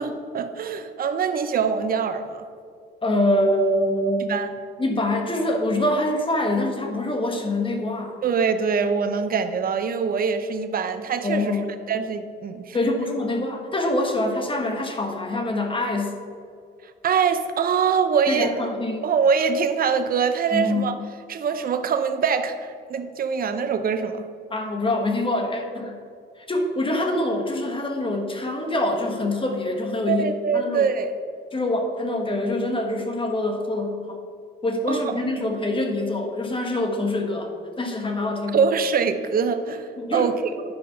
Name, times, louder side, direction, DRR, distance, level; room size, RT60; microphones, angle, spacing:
voice 1, 0.0-2.4 4.2-4.5 8.2-11.6 11.9-12.8 17.0-18.7 19.0-21.0 21.3-24.2 30.1-31.1 34.9-35.0 35.3-35.4 38.5-40.3, right 6 dB, 45° right, 9 dB, 0.7 m, -23 dB
voice 2, 3.0-4.4 4.8-8.2 11.2-11.7 12.7-16.2 18.3-19.1 20.5-20.9 24.5-25.9 26.4-30.9 31.5-34.2 34.6-38.6 40.0-40.3, left 1 dB, 25° left, 3 dB, 1.4 m, -25 dB
9.8 x 5.2 x 5.6 m, 2.2 s
cardioid pair, 90°, 20 cm